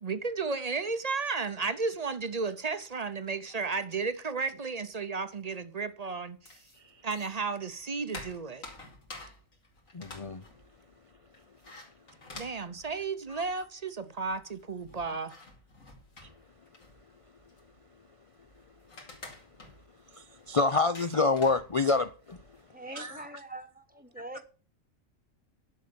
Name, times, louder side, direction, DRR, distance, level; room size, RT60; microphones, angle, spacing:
voice 1, 0.0-6.6 7.0-8.6 12.3-15.3, right 4 dB, 35° right, 0.7 m, -33 dB
sound 1, 6.5-7.5 7.8-13.7 14.0-14.1 14.2-22.6, left 2 dB, 85° left, 3.0 m, -50 dB
voice 2, 9.9-10.4 13.3-13.4 20.1-22.4 23.0-23.2, left 3 dB, 55° left, 0.3 m, -27 dB
voice 3, 22.7-24.4, right 2 dB, 5° right, 1.0 m, -44 dB
11.0 x 6.5 x 6.7 m
omnidirectional pair, 1.4 m